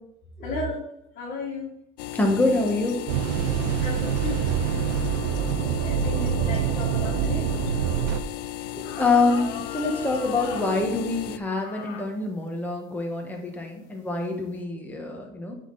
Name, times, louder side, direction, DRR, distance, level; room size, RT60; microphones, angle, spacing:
voice 1, 0.4-0.8 1.1-1.8 3.8-4.5 5.8-7.5, left 2 dB, 45° left, -5 dB, 2.2 m, -34 dB
sound 1, 2.0-11.4, left 12 dB, 80° left, 0.5 m, -35 dB
voice 2, 2.1-3.0 8.7-15.5, left 3 dB, 10° left, 1 dB, 1.5 m, -26 dB
sound 2, 3.1-8.2, right 8 dB, 90° right, 0.5 m, -25 dB
sound 3, 8.2-8.3 8.8-10.7 11.6-12.1 12.7-12.8 13.6-13.9, left 6 dB, 65° left, 1.0 m, -38 dB
8.1 x 4.0 x 4.1 m, 0.75 s
supercardioid pair, 110°, 19 cm